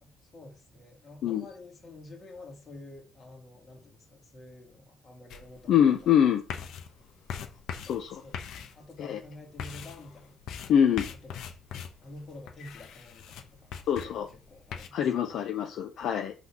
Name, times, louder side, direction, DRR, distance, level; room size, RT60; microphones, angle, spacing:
voice 1, 0.0-6.0 7.7-10.4 11.2-13.7 13.9-14.2 14.5-15.5, left 2 dB, 30° left, 2.0 m, -49 dB
sound 1, 5.3-14.9, left 7 dB, 70° left, 1.0 m, -42 dB
voice 2, 5.7-6.4 7.8-8.2 9.0-9.2 10.7-11.1 13.9-14.3 14.9-16.3, left 9 dB, 55° left, 0.7 m, -24 dB
6.0 x 3.6 x 5.9 m
cardioid pair, 175°, 0 cm